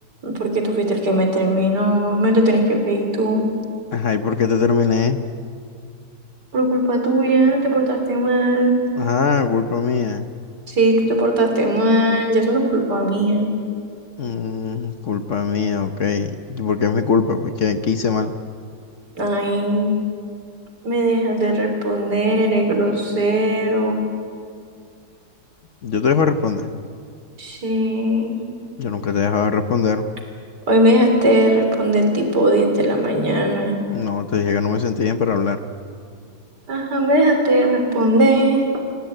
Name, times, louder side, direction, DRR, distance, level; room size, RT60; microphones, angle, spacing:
voice 1, 0.2-3.5 6.5-8.8 10.7-13.5 19.2-19.9 20.8-24.0 27.4-28.4 30.7-33.8 36.7-38.9, right 1 dB, 75° right, 4 dB, 3.9 m, -18 dB
voice 2, 3.9-5.2 9.0-10.3 14.2-18.3 25.8-26.7 28.8-30.1 33.9-35.6, left 5 dB, 55° left, 9 dB, 1.1 m, -21 dB
26.0 x 17.0 x 9.0 m, 2.3 s
omnidirectional pair, 1.8 m